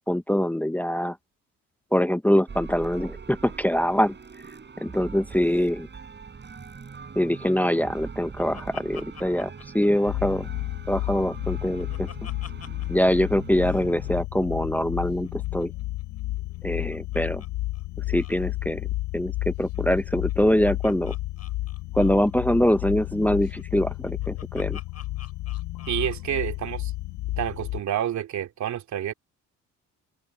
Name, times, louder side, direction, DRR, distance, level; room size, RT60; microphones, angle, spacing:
voice 1, 0.1-1.2 1.9-4.1 4.8-5.9 7.2-10.5 10.9-12.1 12.9-15.7 16.6-17.4 18.1-18.9 19.1-21.1 21.9-24.8, equal, 5° left, 0.8 m, -24 dB
sound 1, 2.5-14.2, right 5 dB, 35° right, 6.7 m, -42 dB
Laughter, 7.7-10.6 11.0-13.1 13.3-13.4 13.6-13.9 15.1-17.5 17.7-17.8 18.1-18.4 19.6-22.4 23.4-26.2, left 8 dB, 55° left, 7.9 m, -49 dB
sound 2, 10.1-27.8, left 17 dB, 75° left, 0.5 m, -32 dB
voice 2, 25.9-26.9 27.4-29.1, right 10 dB, 70° right, 2.7 m, -29 dB
open air
cardioid pair, 90°, 30 cm